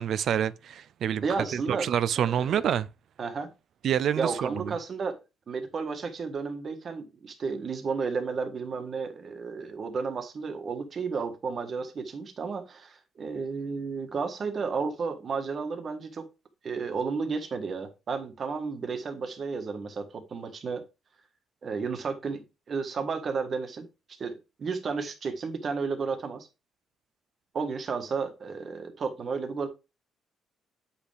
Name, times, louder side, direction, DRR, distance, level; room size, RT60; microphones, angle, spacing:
voice 1, 0.0-1.2 1.5-2.9 3.8-4.7, right 9 dB, 70° right, 0.4 m, -27 dB
voice 2, 1.2-1.9 2.2-2.7 3.2-3.5 4.1-5.2 5.5-16.2 16.6-20.8 21.6-23.9 24.2-26.5 27.5-29.7, right 5 dB, 50° right, 1.5 m, -32 dB
8.2 x 5.5 x 3.4 m
cardioid pair, 90°, 0 cm